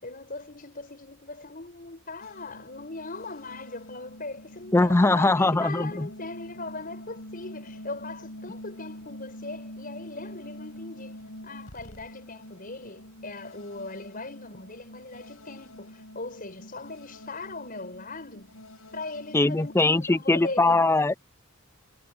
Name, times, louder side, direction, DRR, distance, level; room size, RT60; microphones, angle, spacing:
voice 1, 0.0-18.7 18.9-20.8, left 3 dB, 40° left, 6.8 m, -40 dB
sound 1, 2.2-19.8, left 1 dB, 90° left, 6.8 m, -45 dB
voice 2, 4.7-6.1 19.3-21.1, left 2 dB, 10° left, 0.3 m, -21 dB
head